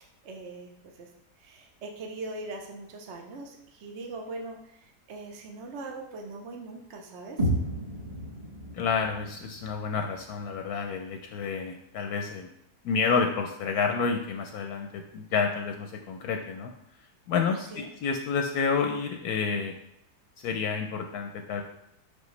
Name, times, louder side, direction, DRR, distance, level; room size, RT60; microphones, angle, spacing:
voice 1, 0.2-1.1 1.4-7.5 17.7-17.9, right 2 dB, 55° right, 2 dB, 0.8 m, -41 dB
sound 1, 7.4-11.4, right 1 dB, 25° right, 1.3 m, -33 dB
voice 2, 8.7-12.5 12.8-16.7 17.3-19.7 20.4-21.6, left 5 dB, 75° left, 4 dB, 1.0 m, -29 dB
6.1 x 5.3 x 3.1 m, 0.76 s
omnidirectional pair, 1.8 m